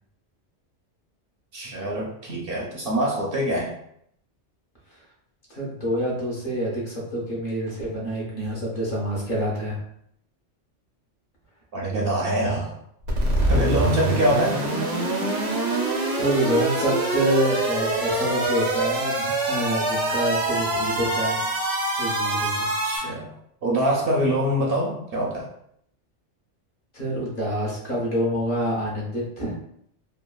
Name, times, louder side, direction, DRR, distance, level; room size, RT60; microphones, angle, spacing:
voice 1, 1.5-3.7 11.7-12.7 13.5-14.6 19.2-19.3 22.8-23.3 23.6-25.5, right 1 dB, 60° right, -2 dB, 0.7 m, -24 dB
voice 2, 5.5-9.8 16.1-21.4 22.0-22.7 26.9-29.6, equal, 50° left, -5 dB, 0.9 m, -27 dB
sound 1, 13.1-23.0, right 2 dB, 90° right, 1.0 m, -25 dB
3.0 x 2.3 x 2.2 m, 0.71 s
omnidirectional pair, 1.2 m